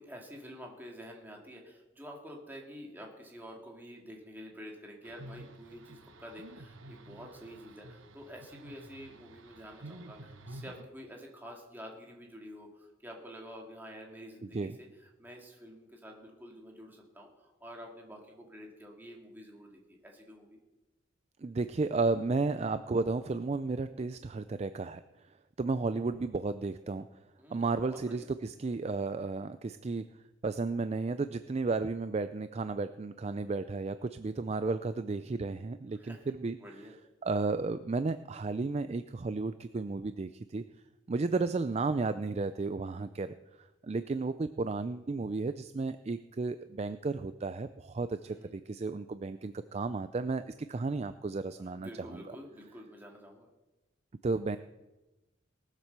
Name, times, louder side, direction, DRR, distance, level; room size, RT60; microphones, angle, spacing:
voice 1, 0.0-14.9 15.2-20.6 27.4-28.3 35.9-36.3 36.6-36.9 48.2-48.6 51.6-53.5, equal, 10° right, 0 dB, 2.4 m, -49 dB
sound 1, 5.0-10.8, right 1 dB, 85° right, 1.1 m, -50 dB
voice 2, 21.4-25.3 25.6-27.1 27.5-30.1 30.4-36.6 37.2-40.6 41.1-52.2 54.2-54.6, right 3 dB, 30° right, 11 dB, 0.4 m, -33 dB
19.0 x 7.4 x 6.7 m, 1.0 s
head